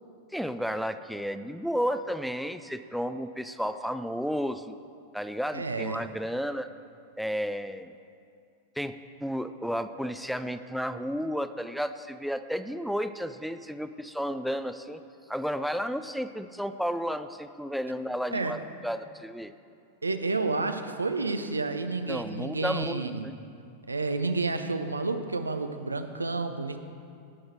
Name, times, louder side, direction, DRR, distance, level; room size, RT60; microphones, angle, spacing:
voice 1, 0.3-4.7 5.1-6.7 7.2-7.9 8.8-15.0 15.3-19.5 22.1-23.3, equal, ahead, 10 dB, 0.4 m, -32 dB
voice 2, 5.5-6.0 18.3-18.6 20.0-23.3 23.9-26.8, right 3 dB, 80° right, 8 dB, 0.6 m, -30 dB
17.5 x 6.4 x 4.5 m, 2.4 s
figure-of-eight pair, 90°, 0 cm